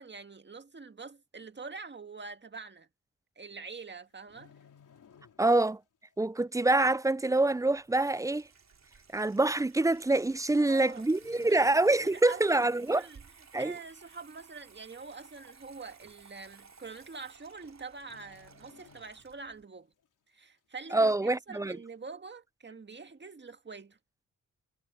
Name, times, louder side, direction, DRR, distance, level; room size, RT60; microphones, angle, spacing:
voice 1, 0.0-2.9 3.4-4.5 10.6-11.1 11.4-11.7 12.0-13.2 13.5-19.9 20.3-24.0, right 4 dB, 35° right, 1.9 m, -45 dB
sound 1, 4.0-5.8 6.0-6.3 6.9-7.0 7.9-8.0 8.2-8.3 9.1-9.4 10.5-10.9 11.1-12.7 13.0-13.3 13.8-14.3 14.6-14.7 15.0-15.1 15.5-15.6 16.5-16.6 16.9-17.2 17.5-17.6 18.0-19.6 20.0-20.1, left 7 dB, 70° left, 3.1 m, -61 dB
voice 2, 5.4-5.8 6.2-8.5 9.1-13.0 13.5-13.7 20.9-21.8, right 2 dB, 10° right, 0.4 m, -26 dB
Water tap faucet / Sink (filling or washing), 7.4-19.6, right 5 dB, 55° right, 3.6 m, -57 dB
cardioid pair, 70°, 32 cm